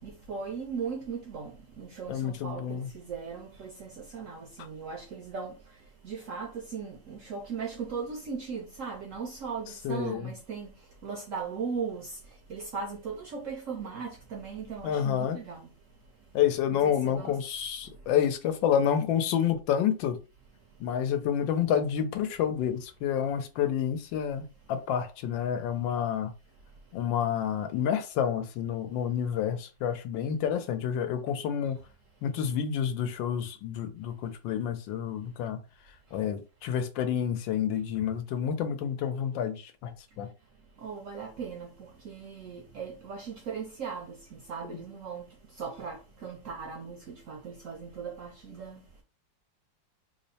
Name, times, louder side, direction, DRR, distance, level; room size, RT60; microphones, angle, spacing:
voice 1, 0.0-15.7 16.7-17.4 17.9-18.0 40.8-48.8, right 5 dB, 70° right, 0.7 m, -38 dB
voice 2, 2.1-2.9 9.8-10.3 14.8-15.4 16.3-20.2 20.8-26.3 26.9-31.8 32.2-35.6 36.1-40.3, left 9 dB, 90° left, 1.3 m, -29 dB
3.4 x 2.1 x 4.0 m
omnidirectional pair, 2.0 m